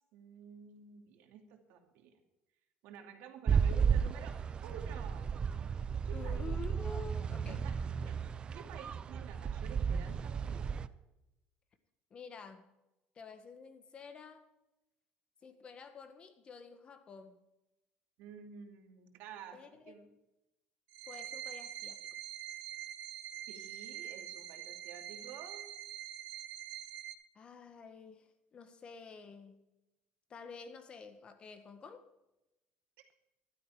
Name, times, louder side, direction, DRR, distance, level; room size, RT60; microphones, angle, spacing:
voice 1, 0.1-2.2 2.8-5.3 6.0-6.4 7.5-7.8 8.1-10.9 18.2-20.1 23.5-25.6, right 7 dB, 80° right, 4 dB, 2.6 m, -51 dB
sound 1, 3.5-10.9, right 6 dB, 30° right, 0.5 m, -34 dB
voice 2, 6.1-7.6 8.0-8.1 12.1-12.7 13.1-14.5 15.4-17.4 19.5-20.2 21.1-22.0 27.3-29.6 30.3-32.0, left 4 dB, 30° left, 9 dB, 1.6 m, -49 dB
sound 2, 20.9-27.1, right 11 dB, 60° right, 1.7 m, -45 dB
14.0 x 12.5 x 4.9 m, 0.95 s
cardioid pair, 150°, 3 cm